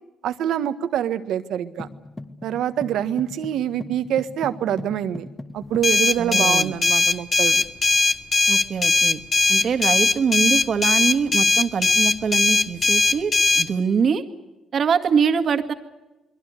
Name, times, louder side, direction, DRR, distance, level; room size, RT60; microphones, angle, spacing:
voice 1, 0.2-1.9 2.4-5.3 5.5-7.6, right 10 dB, 80° right, 11 dB, 1.5 m, -25 dB
sound 1, 1.8-6.0, left 2 dB, 15° left, 1.6 m, -39 dB
sound 2, 5.8-13.7, left 3 dB, 40° left, 1.2 m, -19 dB
voice 2, 6.2-6.8 8.5-9.2 9.5-14.2 14.7-15.7, right 6 dB, 55° right, 8 dB, 2.0 m, -23 dB
29.0 x 22.0 x 6.6 m, 1.1 s
cardioid pair, 90°, 0 cm